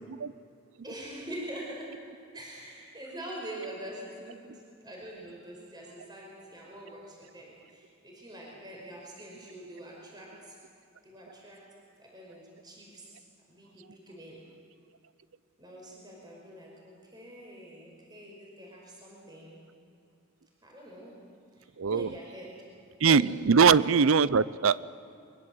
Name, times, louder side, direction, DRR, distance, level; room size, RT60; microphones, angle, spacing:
voice 1, 0.8-1.9 2.3-10.6 11.0-11.6 12.0-14.4 15.6-19.6 20.6-21.1 21.6-22.6 23.1-23.3, right 1 dB, 20° right, -2 dB, 5.0 m, -45 dB
voice 2, 21.8-22.1 23.0-24.8, right 5 dB, 75° right, 18 dB, 0.6 m, -22 dB
23.5 x 22.0 x 7.7 m, 2.6 s
head